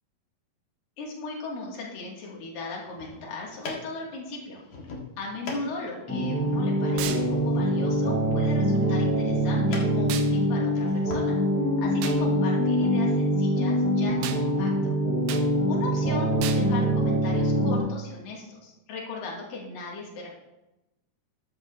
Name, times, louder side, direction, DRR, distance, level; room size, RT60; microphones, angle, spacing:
voice 1, 1.0-4.6 5.2-11.4 11.8-14.9 15.6-20.3, left 3 dB, 75° left, -3 dB, 4.0 m, -37 dB
sound 1, 2.7-11.3, left 3 dB, 55° left, 3.0 m, -43 dB
sound 2, 6.1-17.8, equal, 5° left, 4.0 m, -24 dB
sound 3, 7.0-7.3 10.1-10.3 12.0-12.2 14.2-14.4 15.3-15.5 16.4-16.7, right 9 dB, 85° right, 2.5 m, -34 dB
13.5 x 11.5 x 2.8 m, 0.95 s
omnidirectional pair, 4.1 m